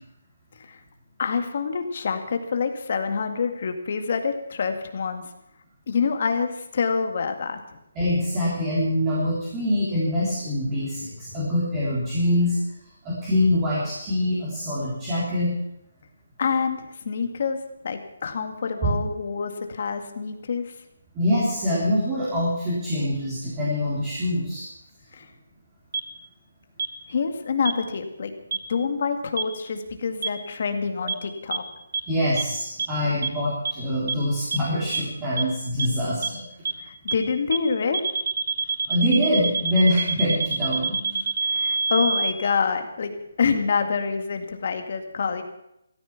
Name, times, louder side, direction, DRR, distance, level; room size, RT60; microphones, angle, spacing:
voice 1, 1.2-5.2 5.9-7.6 16.4-17.6 17.8-20.7 25.1-25.3 27.1-28.3 28.7-31.6 36.8-38.0 41.4-45.4, left 5 dB, 40° left, 6 dB, 2.0 m, -26 dB
voice 2, 8.0-12.6 13.0-15.6 18.8-19.0 21.2-24.6 32.1-36.4 38.9-41.2, left 1 dB, 15° right, -8 dB, 3.5 m, -24 dB
sound 1, 25.9-26.0 26.8-26.9 27.6-27.7 28.5-28.6 29.4-29.5 30.2-30.3 31.1-31.2 31.5-31.6 31.9-32.0 32.4-32.5 32.8-32.9 33.2-33.3 33.6-33.7 34.1-34.2 34.5-34.6 34.9-35.0 35.4-35.5 35.8-35.9 36.2-36.3 36.6-36.7 37.1-37.2 37.5-37.6 37.9-42.3, right 5 dB, 60° right, 2.7 m, -25 dB
16.5 x 14.0 x 6.0 m, 0.82 s
hypercardioid pair, 175°, 0 cm